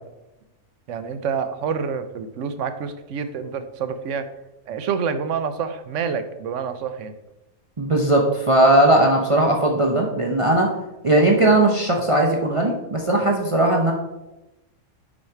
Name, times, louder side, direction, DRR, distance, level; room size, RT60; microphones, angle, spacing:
voice 1, 0.9-4.3 4.7-7.1, right 6 dB, 65° right, 10 dB, 0.9 m, -27 dB
voice 2, 7.8-10.7 11.0-13.9, right 1 dB, 30° right, 1 dB, 0.6 m, -18 dB
6.2 x 5.2 x 4.4 m, 0.96 s
omnidirectional pair, 1.5 m